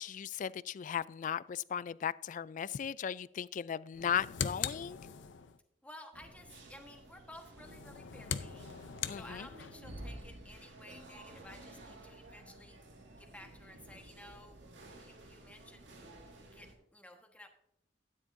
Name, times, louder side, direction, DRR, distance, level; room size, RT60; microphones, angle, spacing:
voice 1, 0.0-5.0 9.0-9.5, left 8 dB, 45° left, 0.3 m, -37 dB
sound 1, 3.9-5.6 7.6-9.9, left 8 dB, 85° left, 0.6 m, -40 dB
voice 2, 5.8-8.7 9.1-12.8 13.2-14.6 15.0-15.9 16.5-17.5, left 1 dB, 10° left, 1.3 m, -54 dB
sound 2, 6.1-16.7, right 1 dB, 75° right, 2.0 m, -52 dB
12.5 x 10.0 x 2.6 m
head